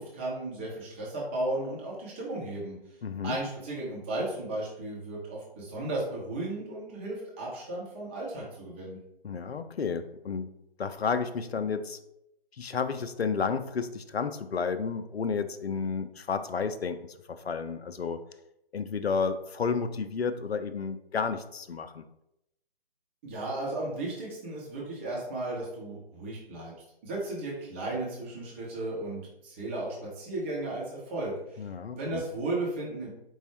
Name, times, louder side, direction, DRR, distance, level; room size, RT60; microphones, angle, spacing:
voice 1, 0.0-2.8 3.2-9.0 23.2-26.7 27.0-31.6 31.9-33.1, right 2 dB, 15° right, -4 dB, 0.6 m, -35 dB
voice 2, 3.0-3.4 9.2-10.5 10.8-12.0 12.6-18.2 18.7-22.0 31.6-32.2, left 5 dB, 80° left, 10 dB, 0.5 m, -31 dB
4.6 x 2.0 x 4.5 m, 0.82 s
figure-of-eight pair, 140°, 31 cm